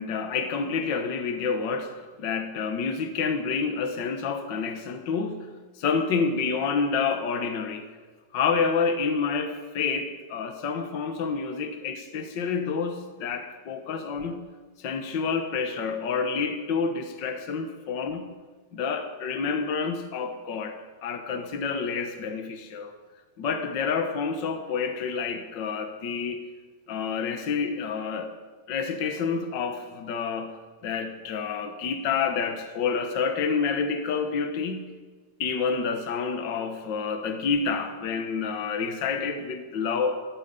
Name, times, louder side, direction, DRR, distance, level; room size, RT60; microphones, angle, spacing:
voice 1, 0.0-5.5 5.8-7.9 8.3-14.5 14.8-18.3 18.7-22.9 23.4-26.4 26.9-28.3 28.7-30.5 30.8-34.9 35.4-40.2, left 5 dB, 90° left, 7 dB, 1.0 m, -28 dB
19.0 x 14.0 x 5.3 m, 1.3 s
omnidirectional pair, 4.1 m